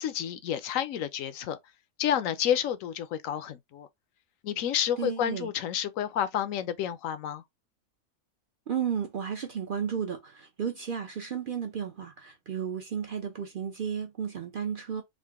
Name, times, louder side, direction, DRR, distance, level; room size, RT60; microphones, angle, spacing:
voice 1, 0.0-1.6 2.0-3.9 4.4-7.4, left 9 dB, 75° left, 1.0 m, -30 dB
voice 2, 5.0-5.5 8.7-15.0, right 7 dB, 50° right, 0.6 m, -33 dB
3.8 x 2.2 x 3.5 m
omnidirectional pair, 1.4 m